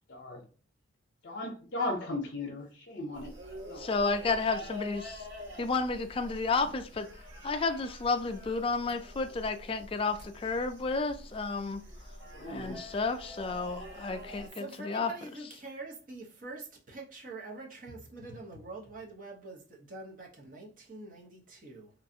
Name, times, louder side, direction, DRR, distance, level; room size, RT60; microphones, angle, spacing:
voice 1, 0.1-0.4 1.2-3.3 3.7-3.8 12.3-12.8, left 2 dB, 65° left, 0.6 m, -36 dB
sound 1, 3.1-14.5, left 1 dB, 85° right, 1.7 m, -46 dB
voice 2, 3.8-5.2 5.6-7.1 7.4-11.8 12.5-15.1, left 4 dB, 30° left, 0.3 m, -31 dB
voice 3, 14.2-21.9, right 3 dB, 45° right, 0.8 m, -45 dB
3.1 x 2.6 x 2.7 m
head